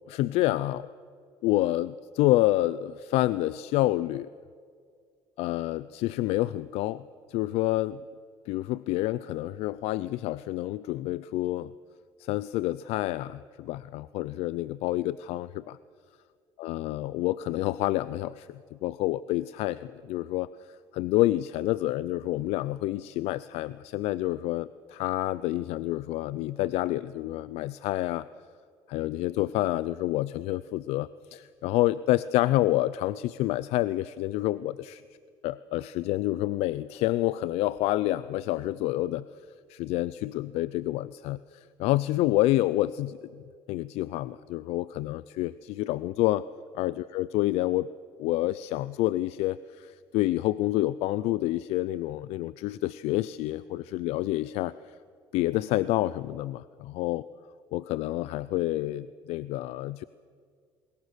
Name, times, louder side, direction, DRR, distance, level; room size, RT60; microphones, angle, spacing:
voice 1, 0.1-0.9 1.4-4.3 5.4-7.0 7.3-8.0 8.5-11.7 12.2-15.8 16.6-28.3 28.9-35.0 35.4-39.3 39.7-43.2 43.7-46.4 46.7-47.9 48.2-55.0 55.3-57.2 57.7-60.0, left 16 dB, 80° left, 17 dB, 0.5 m, -28 dB
28.0 x 21.0 x 6.8 m, 2.1 s
supercardioid pair, 90°, 10 cm